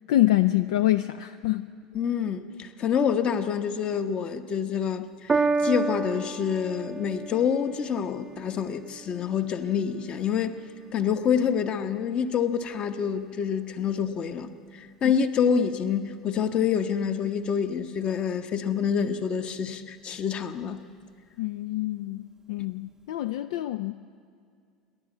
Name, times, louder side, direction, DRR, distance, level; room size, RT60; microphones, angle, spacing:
voice 1, 0.1-1.7 21.4-23.9, left 15 dB, 60° left, 12 dB, 0.4 m, -25 dB
voice 2, 1.9-10.6 10.9-14.5 14.7-20.8, left 7 dB, 35° left, 9 dB, 1.1 m, -27 dB
Piano, 5.3-11.9 12.7-12.8, right 4 dB, 20° right, 0.7 m, -32 dB
29.0 x 11.5 x 8.3 m, 2.3 s
figure-of-eight pair, 75°, 3 cm